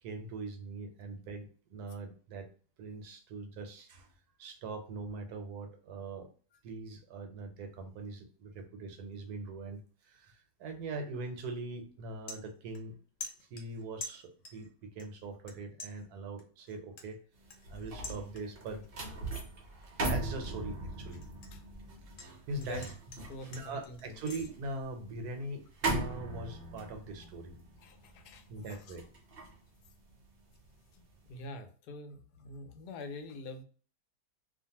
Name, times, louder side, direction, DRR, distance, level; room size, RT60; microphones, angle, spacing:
voice 1, 0.0-2.5 2.8-4.1 4.4-6.3 6.6-12.9 13.4-17.2 17.7-18.8 19.9-21.2 22.2-22.8 23.5-27.6 28.5-29.1, right 3 dB, 80° right, 5 dB, 1.2 m, -42 dB
sound 1, 11.3-11.6 11.9-12.9 13.2-14.7 15.0-15.5 15.8-18.7 19.1-19.4 19.8-22.3 22.6-24.5, left 3 dB, 60° left, 0.9 m, -47 dB
sound 2, 17.4-30.7 31.1-31.4, right 2 dB, 50° right, 0.8 m, -39 dB
voice 2, 23.3-24.2 27.8-29.0 30.9-33.6, left 2 dB, 85° left, 7 dB, 1.1 m, -46 dB
2.5 x 2.5 x 2.7 m, 0.41 s
omnidirectional pair, 1.6 m